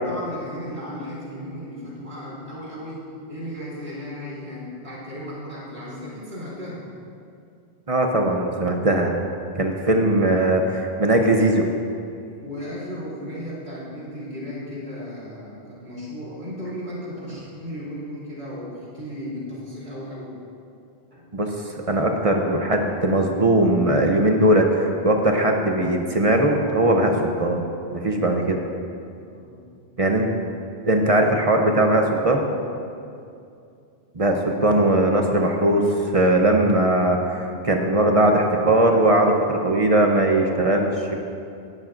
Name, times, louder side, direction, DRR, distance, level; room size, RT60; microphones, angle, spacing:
voice 1, 0.1-6.8 12.4-20.3 21.1-21.3 29.2-29.9 32.8-33.0, equal, 65° right, -7 dB, 3.6 m, -35 dB
voice 2, 7.9-9.1 9.6-11.7 21.3-21.5 21.9-27.1 27.4-27.7 27.9-28.6 30.0-30.3 30.9-32.4 34.1-41.1, right 1 dB, 35° right, 2 dB, 0.8 m, -19 dB
17.5 x 10.5 x 2.6 m, 2.5 s
omnidirectional pair, 1.1 m